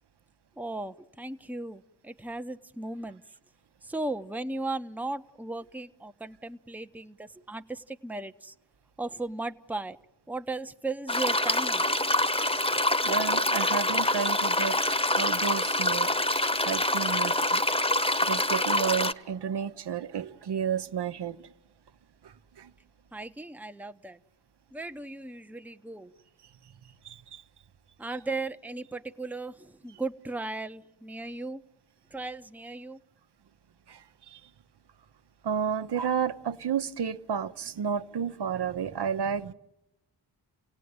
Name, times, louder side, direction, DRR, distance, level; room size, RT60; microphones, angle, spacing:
voice 1, 0.6-3.2 3.8-8.5 9.0-10.0 10.3-11.8 23.1-24.2 24.7-26.1 28.0-31.6 32.1-33.0, right 2 dB, 5° right, 0.8 m, -36 dB
sound 1, 11.1-19.1, left 1 dB, 15° left, 1.1 m, -26 dB
voice 2, 13.1-14.8 15.1-16.1 16.6-17.6 18.2-21.4 22.2-22.7 27.0-27.4 33.9-34.4 35.4-39.5, right 7 dB, 70° right, 0.9 m, -31 dB
29.5 x 17.5 x 9.5 m
cardioid pair, 70°, 43 cm